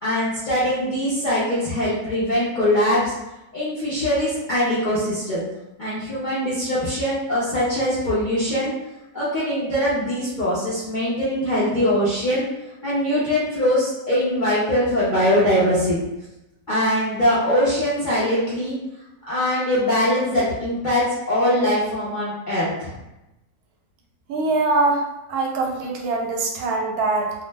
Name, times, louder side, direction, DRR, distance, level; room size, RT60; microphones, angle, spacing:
voice 1, 0.0-3.1 3.5-5.4 5.8-8.7 9.1-12.4 12.8-16.0 16.7-18.7 19.3-22.9, equal, 60° left, -9 dB, 0.5 m, -22 dB
voice 2, 24.3-25.0 25.3-27.3, right 3 dB, 80° right, 1 dB, 1.1 m, -22 dB
2.6 x 2.0 x 3.2 m, 0.95 s
omnidirectional pair, 1.6 m